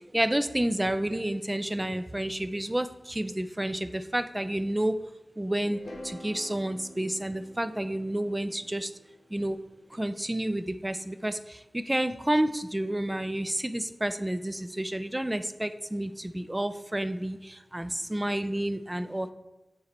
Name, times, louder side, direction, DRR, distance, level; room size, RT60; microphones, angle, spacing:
voice 1, 0.1-5.0 5.4-5.8 6.0-8.9 9.3-9.6 10.0-11.4 11.7-19.3, right 1 dB, 15° right, 11 dB, 0.4 m, -30 dB
sound 1, 5.7-9.9, left 1 dB, 70° left, 1.1 m, -47 dB
7.3 x 3.1 x 4.1 m, 1.1 s
wide cardioid pair, 65°, 0 cm